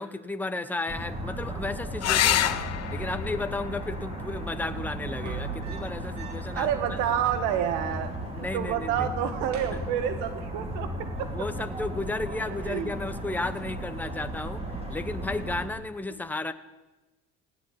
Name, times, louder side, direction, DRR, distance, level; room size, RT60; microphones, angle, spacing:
voice 1, 0.0-2.6 2.9-6.7 8.3-9.1 9.7-9.8 11.3-14.6 14.9-16.5, left 2 dB, 5° left, 9 dB, 1.1 m, -33 dB
sound 1, 0.9-15.7, right 1 dB, 20° right, 5.1 m, -35 dB
sound 2, 2.0-7.0 8.9-9.6 13.0-13.1 13.4-13.5, left 12 dB, 55° left, 1.2 m, -31 dB
sound 3, 5.1-6.7 7.0-7.1 7.2-8.2 8.5-8.9 9.2-10.6 11.9-12.3, right 8 dB, 60° right, 4.3 m, -43 dB
voice 2, 6.5-11.5 12.6-12.9, right 9 dB, 90° right, 9 dB, 1.7 m, -29 dB
18.5 x 17.0 x 10.0 m, 1.1 s
cardioid pair, 105°, 31 cm